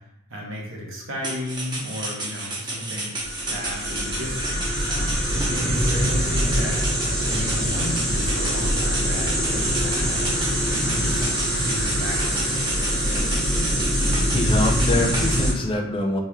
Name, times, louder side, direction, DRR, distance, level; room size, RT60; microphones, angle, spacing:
voice 1, 0.3-3.1 3.5-5.2 5.5-6.8 7.3-10.2 10.7-11.3 11.6-12.6, left 1 dB, 70° right, -3 dB, 1.1 m, -33 dB
sound 1, 1.2-15.4, right 1 dB, 20° right, 0.9 m, -32 dB
sound 2, 3.2-15.5, equal, 5° left, 1.0 m, -23 dB
voice 2, 14.0-16.2, left 1 dB, 25° left, 2 dB, 0.5 m, -25 dB
4.3 x 3.2 x 2.3 m, 0.86 s
head